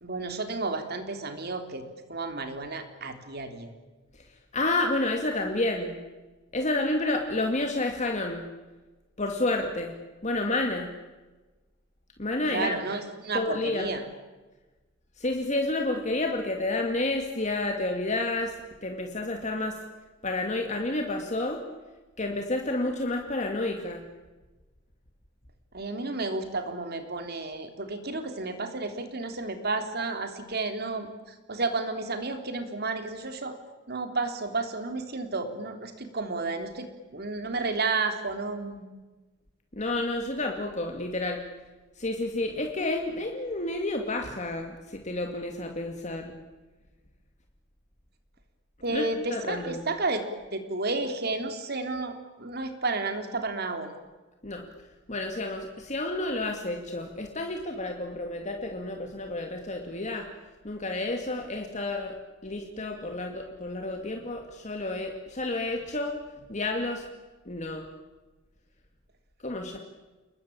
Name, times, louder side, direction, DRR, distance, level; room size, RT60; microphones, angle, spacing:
voice 1, 0.0-1.8 2.1-3.7 12.5-14.0 25.7-31.1 31.5-33.6 33.9-38.8 48.8-50.2 50.5-53.9, right 3 dB, 55° right, 7 dB, 3.5 m, -31 dB
voice 2, 4.5-6.0 6.5-8.4 9.2-9.9 10.2-10.9 12.2-12.8 13.3-13.9 15.2-19.8 20.2-21.6 22.2-24.0 39.7-41.4 42.0-46.4 48.9-49.8 54.4-54.6 55.1-60.3 60.6-62.2 62.4-66.1 66.5-67.1 67.5-67.9 69.4-69.8, left 2 dB, 35° left, 3 dB, 2.3 m, -30 dB
29.5 x 21.0 x 8.8 m, 1.2 s
head